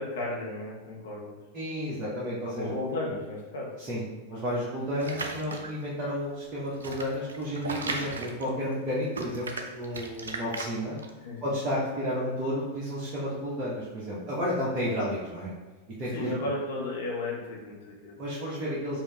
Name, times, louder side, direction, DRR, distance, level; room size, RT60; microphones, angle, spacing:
voice 1, 0.0-1.3 2.6-3.7 11.2-11.5 16.1-18.2, left 2 dB, 60° left, -3 dB, 1.1 m, -34 dB
voice 2, 1.5-2.7 3.8-11.0 11.4-15.5 16.0-16.3 18.2-19.0, equal, 30° right, -8 dB, 1.0 m, -32 dB
sound 1, 5.0-5.8 6.4-8.8 9.1-11.1, right 3 dB, 70° right, 0.5 m, -36 dB
5.0 x 2.7 x 3.3 m, 1.3 s
figure-of-eight pair, 90°, 0 cm